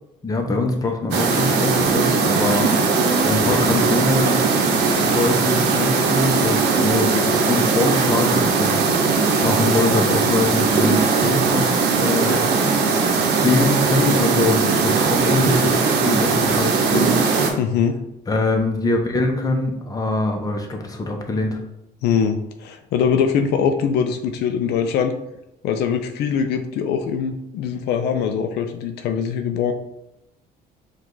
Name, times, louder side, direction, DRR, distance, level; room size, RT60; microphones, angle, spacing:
voice 1, 0.2-4.4 5.0-12.9 13.4-17.1 18.3-21.6, left 2 dB, 20° left, 2 dB, 0.8 m, -23 dB
sound 1, 1.1-17.5, right 4 dB, 80° right, 0.7 m, -19 dB
sound 2, 2.9-3.8 4.7-8.4, equal, 10° right, 1.2 m, -36 dB
voice 2, 17.6-18.0 22.0-25.1 25.6-29.7, left 7 dB, 80° left, 6 dB, 0.4 m, -22 dB
4.7 x 2.4 x 3.8 m, 0.88 s
cardioid pair, 110°, 17 cm